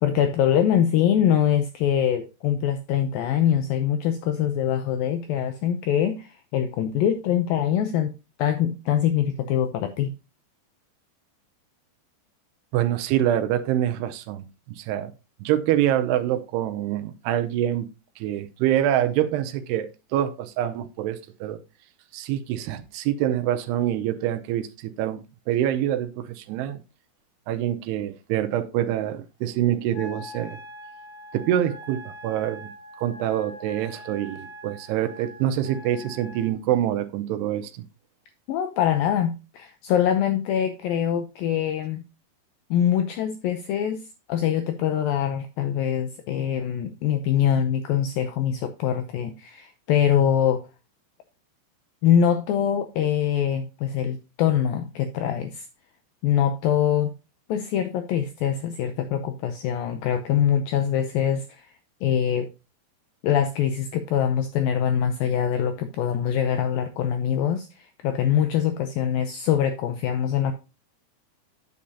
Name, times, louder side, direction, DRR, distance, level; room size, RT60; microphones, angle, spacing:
voice 1, 0.0-10.1 38.5-42.0 42.7-50.6 52.0-55.7 56.2-57.1 57.5-61.7 62.0-62.5 63.2-70.5, left 9 dB, 80° left, 2.1 m, -24 dB
voice 2, 12.7-15.1 15.4-17.9 18.2-21.6 22.1-26.8 27.5-30.6 31.3-32.7 33.0-37.9, right 11 dB, 85° right, 2.7 m, -25 dB
Wind instrument woodwind instrument, 29.9-36.5, left 1 dB, 45° left, 4.7 m, -43 dB
8.7 x 8.4 x 2.7 m
omnidirectional pair, 4.9 m